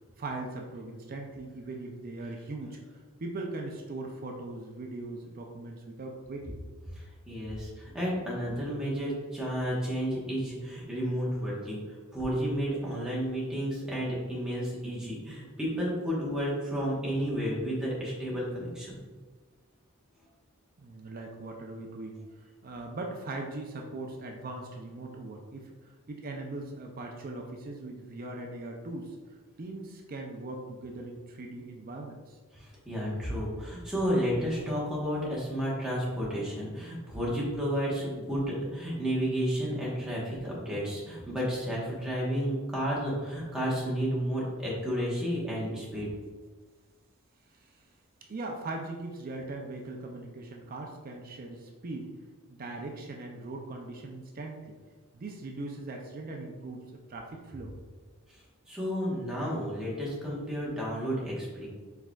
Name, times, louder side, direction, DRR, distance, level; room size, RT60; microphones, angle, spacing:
voice 1, 0.2-6.6 20.8-22.2 22.6-29.2 29.6-32.4 47.5-47.8 48.3-52.1 52.5-54.8 55.1-56.8 57.1-57.7, right 2 dB, 40° right, 1 dB, 0.4 m, -40 dB
voice 2, 7.0-11.8 12.1-19.0 32.5-46.1 58.7-61.7, equal, 5° right, -7 dB, 1.1 m, -32 dB
4.6 x 4.4 x 2.3 m, 1.4 s
head